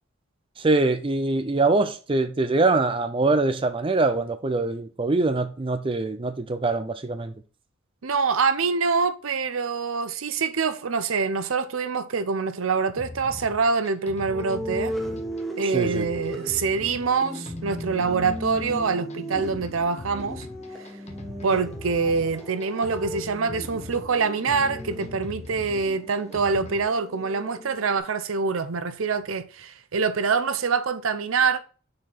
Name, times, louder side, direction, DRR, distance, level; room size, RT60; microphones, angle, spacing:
voice 1, 0.6-7.3 15.6-16.1, right 3 dB, 25° right, 0.5 m, -23 dB
voice 2, 8.0-14.9 15.6-20.5 21.4-31.6, right 5 dB, 80° right, 0.6 m, -25 dB
sound 1, 13.0-26.9, left 2 dB, 35° left, 0.9 m, -41 dB
sound 2, 14.3-28.0, right 1 dB, ahead, 1.3 m, -37 dB
6.4 x 4.4 x 4.0 m
head